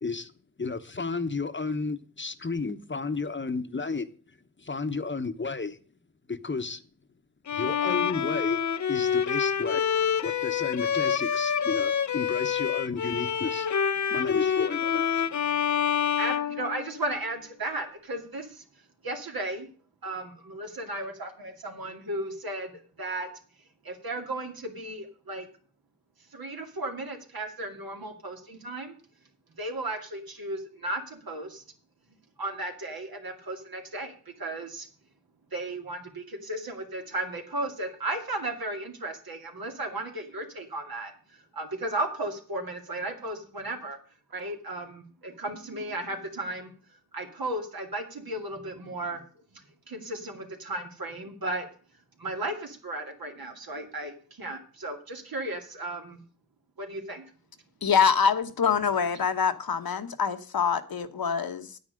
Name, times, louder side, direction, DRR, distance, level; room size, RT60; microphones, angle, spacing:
voice 1, 0.0-0.3 0.6-4.1 4.6-5.8 6.3-6.8 7.5-8.6 8.9-13.7 14.1-15.2, left 4 dB, 30° left, 1.0 m, -32 dB
Bowed string instrument, 7.5-17.3, left 8 dB, 50° left, 0.6 m, -27 dB
voice 2, 16.2-18.6 19.0-19.7 20.0-23.3 23.8-25.5 26.3-28.9 29.6-31.6 32.4-34.9 35.5-41.1 41.5-44.0 44.3-46.7 47.1-49.2 49.9-51.7 52.2-56.2 56.8-57.2, right 2 dB, 75° right, 2.5 m, -35 dB
voice 3, 57.8-61.8, left 6 dB, 75° left, 1.2 m, -25 dB
9.6 x 8.9 x 6.4 m
wide cardioid pair, 85°, 36 cm